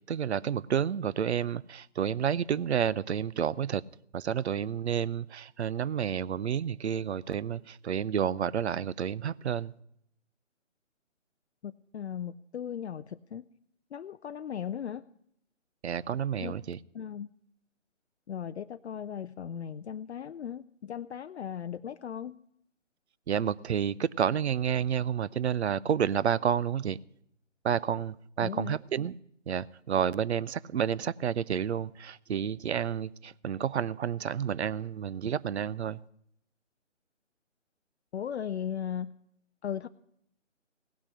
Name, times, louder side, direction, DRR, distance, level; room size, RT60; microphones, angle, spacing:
voice 1, 0.1-3.8 4.1-9.7 15.8-16.8 23.3-27.0 27.6-29.2 29.5-36.0, right 8 dB, 65° right, 0.5 m, -30 dB
voice 2, 11.6-13.5 13.9-15.0 16.4-16.6 16.9-17.3 18.3-22.4 28.4-28.8 38.1-39.1 39.6-39.9, left 8 dB, 65° left, 0.5 m, -37 dB
17.0 x 6.2 x 9.8 m
figure-of-eight pair, 155°, 37 cm